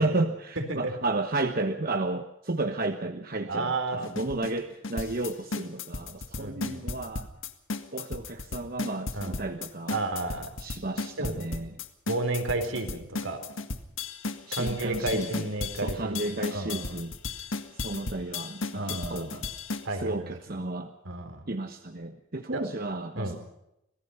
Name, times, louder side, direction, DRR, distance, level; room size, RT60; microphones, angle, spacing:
voice 1, 0.0-7.3 7.9-10.0 10.6-11.8 14.5-15.5 15.7-17.1 17.7-19.3 20.0-20.9 21.5-23.4, right 2 dB, 45° right, 6 dB, 1.1 m, -32 dB
voice 2, 0.6-0.9 3.5-4.0 6.4-6.9 9.1-9.4 9.9-10.5 11.2-11.5 12.1-13.4 14.5-17.0 18.7-19.4 19.8-20.6 21.0-21.4 22.5-22.6 23.2-23.4, right 2 dB, 70° right, 6 dB, 4.0 m, -32 dB
sound 1, 4.0-19.9, left 3 dB, 70° left, 1.8 m, -35 dB
26.0 x 18.0 x 5.6 m, 0.84 s
head